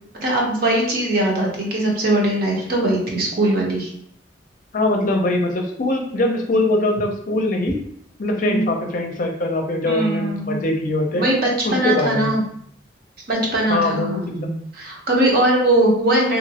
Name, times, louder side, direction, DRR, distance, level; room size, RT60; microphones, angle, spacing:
voice 1, 0.1-3.9 8.4-8.6 9.8-10.6 11.1-12.4 13.3-14.2 14.7-16.4, right 1 dB, 55° right, -2 dB, 0.9 m, -20 dB
voice 2, 4.7-7.8 8.2-11.2 11.6-12.4 13.7-14.6, left 2 dB, 50° left, 2 dB, 0.5 m, -22 dB
3.0 x 2.6 x 2.8 m, 0.66 s
head